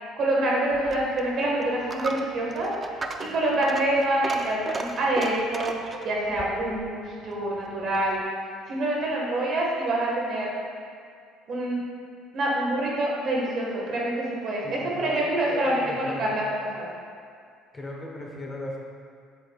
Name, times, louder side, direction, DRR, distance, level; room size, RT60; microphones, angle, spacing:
voice 1, 0.2-3.0 3.3-5.8 6.0-8.2 8.7-10.5 11.5-11.8 12.3-16.9, right 1 dB, 35° right, -4 dB, 1.4 m, -26 dB
Coin (dropping), 0.7-8.2, right 3 dB, 20° right, 0.3 m, -37 dB
voice 2, 14.6-16.4 17.7-18.8, left 1 dB, 15° left, -2 dB, 0.8 m, -36 dB
8.0 x 7.1 x 2.3 m, 2.2 s
cardioid pair, 170°, 0 cm